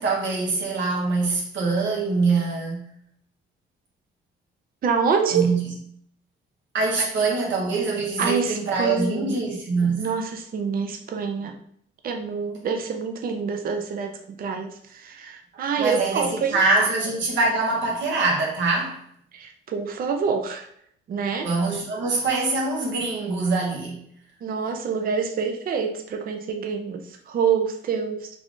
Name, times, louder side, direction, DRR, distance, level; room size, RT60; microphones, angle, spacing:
voice 1, 0.0-2.9 5.3-5.7 6.7-10.1 15.8-19.0 21.4-24.0, right 3 dB, 70° right, 1.2 m, -24 dB
voice 2, 4.8-5.5 7.0-7.1 7.4-7.5 8.2-9.4 10.0-11.6 12.0-14.1 14.4-16.9 19.3-20.7 21.1-21.5 24.4-28.3, right 6 dB, 45° right, 0.5 m, -26 dB
3.3 x 2.4 x 3.7 m
cardioid pair, 90°, 20 cm